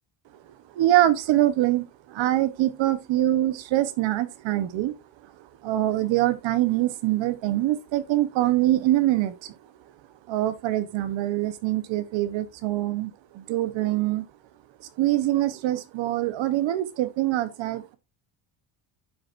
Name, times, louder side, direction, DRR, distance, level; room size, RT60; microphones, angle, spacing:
voice 1, 0.8-1.8 2.1-4.9 5.6-9.5 10.3-14.2 15.0-18.0, right 14 dB, 65° right, 1.0 m, -24 dB
8.9 x 6.2 x 2.5 m
cardioid pair, 150°, 48 cm